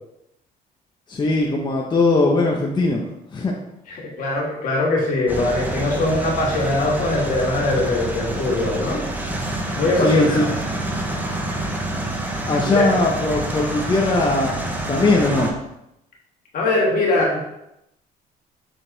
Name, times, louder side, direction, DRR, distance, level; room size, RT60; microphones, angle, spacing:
voice 1, 1.1-3.0 3.3-3.5 10.0-10.4 12.5-14.6 14.9-15.5, left 2 dB, 25° left, -1 dB, 0.8 m, -19 dB
voice 2, 3.9-9.0 9.8-10.5 12.7-12.8 16.5-17.4, left 2 dB, 55° left, -3 dB, 2.2 m, -21 dB
sound 1, 5.3-15.5, right 1 dB, 10° right, 1.0 m, -27 dB
6.5 x 4.0 x 3.9 m, 0.84 s
cardioid pair, 110°, 17 cm